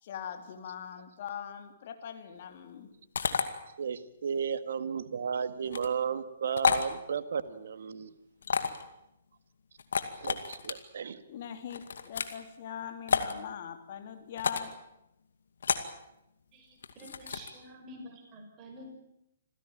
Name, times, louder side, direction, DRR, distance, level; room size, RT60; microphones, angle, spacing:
voice 1, 0.0-2.9 8.4-8.8 11.3-14.7, left 8 dB, 50° left, 7 dB, 3.3 m, -42 dB
sound 1, 3.1-3.4 5.6-5.9 6.6-6.9 8.4-8.8 9.8-10.7 11.7-12.4 13.1-13.3 14.4-14.7 15.6-15.9 16.8-17.5, left 6 dB, 70° left, 2.2 m, -30 dB
voice 2, 3.8-8.1 10.2-11.2, right 7 dB, 65° right, 12 dB, 1.8 m, -34 dB
voice 3, 16.5-19.0, equal, 25° right, 2 dB, 5.8 m, -49 dB
27.0 x 16.0 x 9.1 m, 0.85 s
figure-of-eight pair, 130°, 0 cm